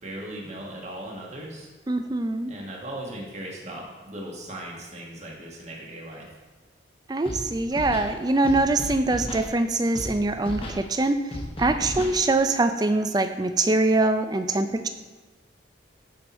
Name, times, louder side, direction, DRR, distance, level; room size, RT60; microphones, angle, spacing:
voice 1, 0.0-1.7 2.5-6.3, right 1 dB, 35° right, -2 dB, 1.5 m, -38 dB
voice 2, 1.9-2.5 7.1-11.2 11.6-14.9, right 2 dB, 20° right, 8 dB, 0.4 m, -23 dB
Scratching (performance technique), 7.2-7.4 7.7-8.1 8.4-9.5 9.9-10.1 10.4-10.8 11.3-12.2, left 1 dB, 30° left, 1.1 m, -34 dB
10.0 x 4.5 x 4.2 m, 1.2 s
head